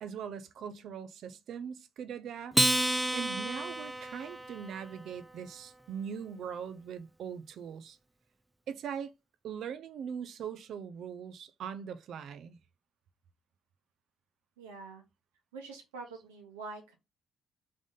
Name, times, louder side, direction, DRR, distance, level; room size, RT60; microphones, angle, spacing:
voice 1, 0.0-2.6 3.1-8.0 8.7-9.1 9.4-12.6, right 7 dB, 55° right, 0.5 m, -41 dB
Acoustic guitar, 2.5-5.2, right 1 dB, 5° right, 0.4 m, -30 dB
voice 2, 14.6-15.0 15.5-16.9, right 3 dB, 75° right, 1.2 m, -45 dB
3.7 x 3.6 x 3.8 m
figure-of-eight pair, 45°, 0 cm